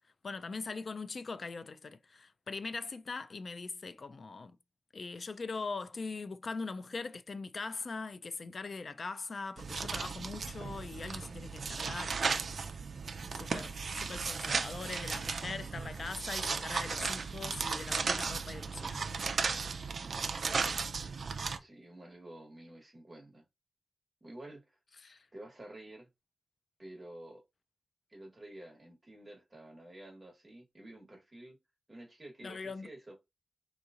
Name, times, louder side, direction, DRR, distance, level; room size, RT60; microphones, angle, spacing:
voice 1, 0.2-4.6 4.9-12.3 13.4-19.2 20.6-21.0 25.0-25.3 32.4-32.9, left 4 dB, 45° left, 0.4 m, -41 dB
sound 1, 9.6-21.6, right 5 dB, 60° right, 0.4 m, -35 dB
voice 2, 21.1-23.4 24.2-24.8 25.3-26.1 26.8-27.4 28.1-31.6 31.9-33.2, right 1 dB, 25° right, 1.3 m, -50 dB
3.8 x 2.9 x 2.5 m
wide cardioid pair, 115°, 0 cm